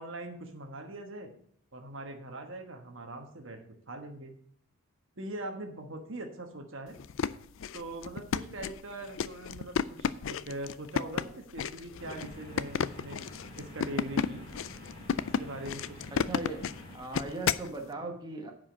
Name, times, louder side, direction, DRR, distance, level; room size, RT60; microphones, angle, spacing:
voice 1, 0.0-1.3 1.7-4.3 5.2-7.0 7.7-13.2 13.6-14.5 15.4-16.1, right 1 dB, 60° right, 5 dB, 1.3 m, -42 dB
sound 1, 7.0-17.7, left 6 dB, 60° left, 0.4 m, -33 dB
sound 2, 12.0-17.0, left 1 dB, 25° left, 2.9 m, -48 dB
voice 2, 16.1-16.7 16.9-18.5, right 2 dB, 20° right, 1 dB, 1.3 m, -38 dB
9.9 x 5.1 x 6.2 m, 0.67 s
head